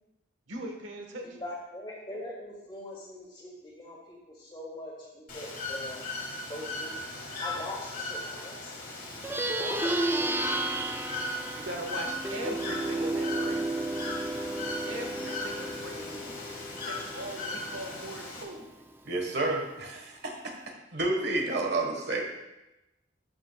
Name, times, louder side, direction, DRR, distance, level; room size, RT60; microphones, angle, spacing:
voice 1, 0.5-1.4 11.5-13.8 14.8-16.6 16.9-18.7, right 1 dB, 85° right, 3 dB, 1.3 m, -40 dB
voice 2, 1.2-6.0 6.5-8.7 9.6-10.1, left 1 dB, 25° left, -3 dB, 2.3 m, -42 dB
Bird / Water, 5.3-18.4, left 2 dB, 45° left, 1.6 m, -38 dB
Plucked string instrument, 9.1-18.8, right 2 dB, 10° right, 0.3 m, -33 dB
voice 3, 19.0-20.5 20.9-22.2, right 2 dB, 60° right, 2 dB, 1.4 m, -30 dB
13.0 x 6.9 x 2.3 m, 0.95 s
head